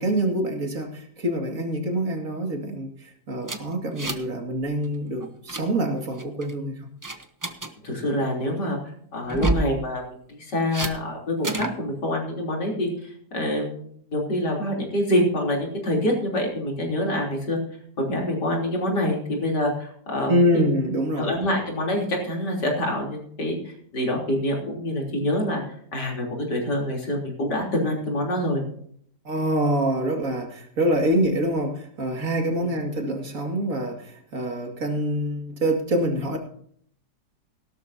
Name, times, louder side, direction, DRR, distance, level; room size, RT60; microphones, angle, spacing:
voice 1, 0.0-6.8 20.3-21.3 29.2-36.4, right 1 dB, 50° right, 2 dB, 2.7 m, -25 dB
sound 1, 3.4-4.4 4.6-4.9 5.2-5.6 6.2-6.5 7.0-7.7 9.2-9.7 10.7-10.9 11.4-11.8, right 2 dB, 20° right, 0.5 m, -28 dB
voice 2, 7.8-17.6 18.0-20.7 21.2-25.6 25.9-28.6 32.6-32.7, left 1 dB, 80° left, -1 dB, 4.1 m, -26 dB
17.0 x 12.5 x 2.8 m, 0.64 s
omnidirectional pair, 1.8 m